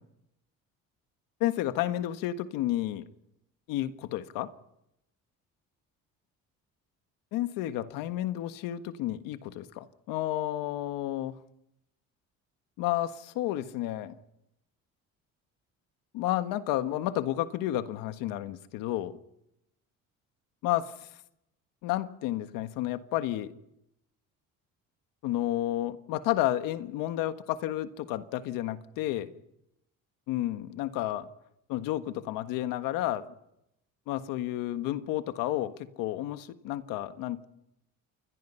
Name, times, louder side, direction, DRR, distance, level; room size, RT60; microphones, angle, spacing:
voice 1, 1.4-3.1 3.7-4.5 7.3-11.4 12.8-14.1 16.1-19.1 20.6-21.1 21.8-23.5 25.2-29.3 30.3-31.3 31.7-33.3 34.1-35.7 36.0-37.4, left 14 dB, 85° left, 10 dB, 1.6 m, -31 dB
29.0 x 22.0 x 5.8 m, 0.83 s
supercardioid pair, 90°, 33 cm